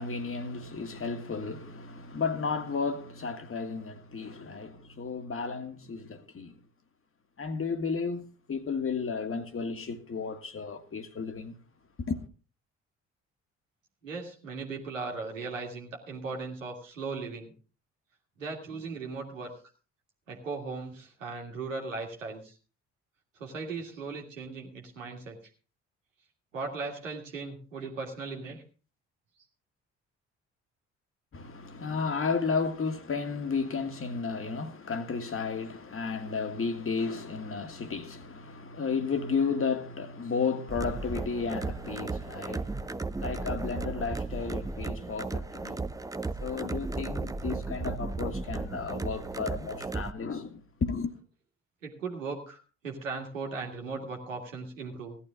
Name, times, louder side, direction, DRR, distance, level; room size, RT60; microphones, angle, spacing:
voice 1, 0.0-6.6 7.4-11.6 12.0-12.3 31.3-45.9 46.4-51.1, left 5 dB, 35° left, 1.7 m, -33 dB
voice 2, 14.0-17.5 18.4-19.5 20.3-22.5 23.4-25.4 26.5-28.6 51.8-55.2, right 4 dB, 85° right, 2.1 m, -38 dB
sound 1, 40.7-50.1, right 3 dB, 10° right, 0.6 m, -35 dB
16.5 x 11.5 x 3.7 m
figure-of-eight pair, 45°, 37 cm